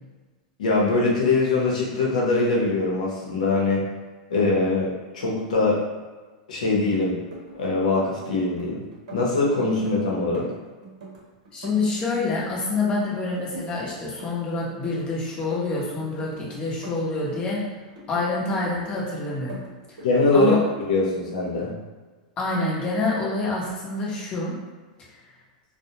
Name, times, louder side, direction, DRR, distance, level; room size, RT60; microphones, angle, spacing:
voice 1, 0.6-3.8 4.3-5.8 6.5-7.2 7.5-8.8 9.1-10.5 20.0-20.6 20.9-21.7, left 3 dB, 85° left, -3 dB, 0.7 m, -22 dB
sound 1, 7.2-8.6 8.9-9.9 10.2-12.5 12.7-13.8 14.0-15.1 15.3-17.6 18.0-19.0 19.3-20.4 20.6-21.0, right 2 dB, 75° right, 0.7 m, -41 dB
voice 2, 11.5-17.6 18.1-19.6 19.9-20.0 20.3-20.6 22.4-24.5, left 3 dB, 25° left, -4 dB, 0.7 m, -27 dB
2.4 x 2.1 x 2.8 m, 1.3 s
supercardioid pair, 135°, 4 cm